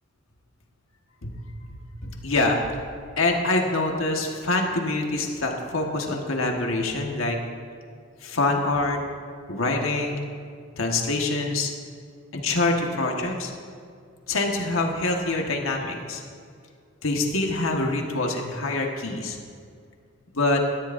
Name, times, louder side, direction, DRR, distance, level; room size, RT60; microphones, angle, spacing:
voice 1, 2.0-2.6 3.2-7.4 8.2-9.0 9.5-10.3 10.8-11.7 12.3-13.5 14.3-16.2 17.0-19.4 20.3-20.6, left 2 dB, 85° left, 1 dB, 1.5 m, -25 dB
18.0 x 13.5 x 2.6 m, 2.2 s
head